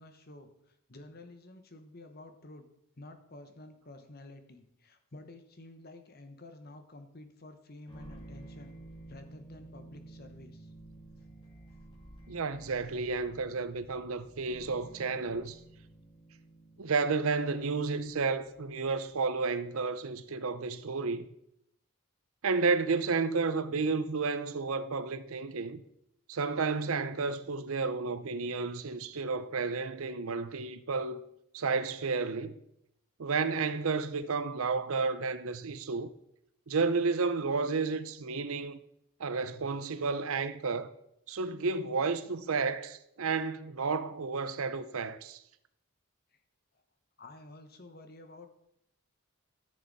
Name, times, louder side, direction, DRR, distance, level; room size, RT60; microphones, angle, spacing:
voice 1, 0.0-2.6 3.0-8.8 9.1-10.7 47.2-48.5, left 2 dB, 45° left, 1.1 m, -51 dB
sound 1, 7.9-19.3, right 2 dB, 20° left, 2.4 m, -52 dB
voice 2, 12.3-15.6 16.8-21.3 22.4-25.8 26.3-31.2 31.5-32.5 33.2-36.1 36.7-38.8 39.2-40.9 41.3-45.4, right 4 dB, 75° right, 0.6 m, -31 dB
14.0 x 6.6 x 4.1 m
head